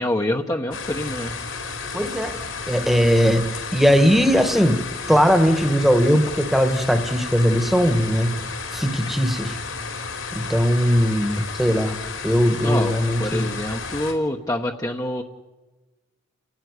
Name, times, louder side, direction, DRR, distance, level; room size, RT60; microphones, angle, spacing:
voice 1, 0.0-1.3 12.6-12.9 13.2-15.2, left 1 dB, 15° left, 2 dB, 1.0 m, -26 dB
sound 1, 0.7-14.1, left 4 dB, 75° left, 4.1 m, -32 dB
voice 2, 1.9-2.4 2.7-8.3 8.7-9.6 10.3-12.0 12.2-13.5, equal, ahead, 8 dB, 1.4 m, -19 dB
30.0 x 16.5 x 9.6 m, 1.2 s
head